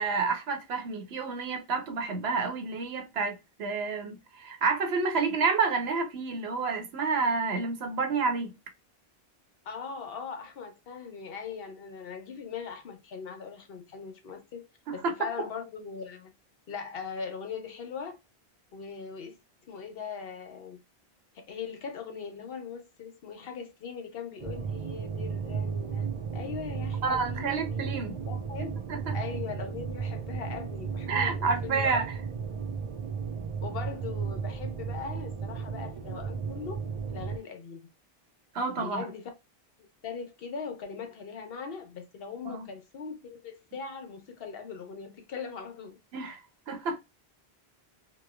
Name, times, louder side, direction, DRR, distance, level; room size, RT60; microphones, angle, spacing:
voice 1, 0.0-8.5 14.9-15.1 27.0-28.2 28.9-29.2 31.1-32.0 38.5-39.1 42.5-42.7 46.1-46.4 46.7-47.0, right 4 dB, 85° right, 1.0 m, -29 dB
voice 2, 9.6-14.6 14.9-16.3 16.7-18.2 18.7-19.4 19.7-20.8 21.3-27.9 28.1-28.8 29.1-32.0 33.6-36.8 37.1-37.9 38.8-39.3 40.0-46.0, left 6 dB, 70° left, 0.9 m, -40 dB
sound 1, 24.4-37.4, right 6 dB, 55° right, 0.3 m, -34 dB
3.0 x 2.1 x 2.2 m
omnidirectional pair, 1.0 m